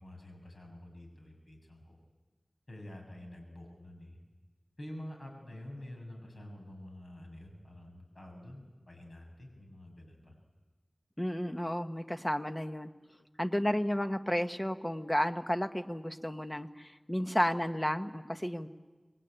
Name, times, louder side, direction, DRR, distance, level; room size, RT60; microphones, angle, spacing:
voice 1, 0.0-2.0 2.7-4.2 4.8-10.4, left 1 dB, 70° left, 2 dB, 6.9 m, -48 dB
voice 2, 11.2-12.9 13.4-18.7, equal, 20° left, 8 dB, 1.2 m, -32 dB
26.0 x 21.5 x 9.0 m, 1.3 s
wide cardioid pair, 50°, 0 cm